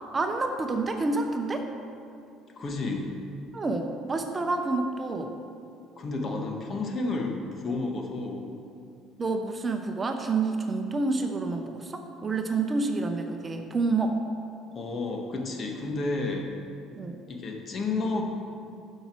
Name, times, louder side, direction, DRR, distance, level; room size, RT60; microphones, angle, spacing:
voice 1, 0.1-1.7 3.5-5.3 9.2-14.2 16.9-17.2, right 3 dB, 30° right, 5 dB, 0.9 m, -28 dB
voice 2, 2.6-3.1 6.0-7.4 7.6-8.5 14.7-16.5 17.3-18.2, left 3 dB, 40° left, 2 dB, 1.5 m, -31 dB
12.0 x 5.7 x 4.6 m, 2.5 s
supercardioid pair, 80°, 0 cm